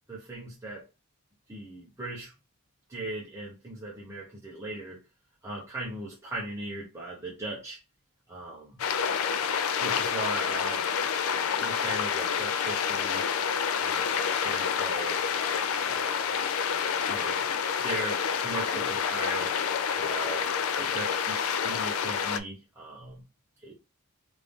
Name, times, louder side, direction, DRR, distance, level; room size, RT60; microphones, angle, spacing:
voice 1, 0.1-0.8 1.5-2.3 2.9-5.0 5.4-7.8 8.3-8.8 9.8-10.9 11.6-13.2 13.7-15.2 15.8-16.3 17.1-17.4 17.8-19.5 20.0-20.5 20.8-23.2 23.6-23.7, right 2 dB, 15° right, 0.7 m, -38 dB
sound 1, 8.8-22.4, left 7 dB, 70° left, 0.3 m, -28 dB
3.2 x 2.5 x 3.5 m
head